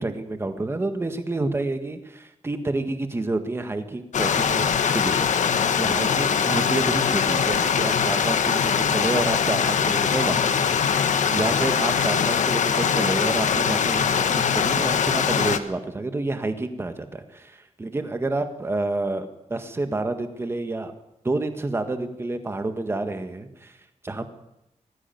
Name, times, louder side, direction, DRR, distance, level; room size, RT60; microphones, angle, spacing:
voice 1, 0.0-20.9 21.2-23.8 24.0-24.3, right 2 dB, 20° right, 8 dB, 1.6 m, -29 dB
Stream, 4.1-15.6, left 7 dB, 75° left, 1.4 m, -22 dB
19.5 x 15.0 x 9.3 m, 0.86 s
wide cardioid pair, 180°, 13 cm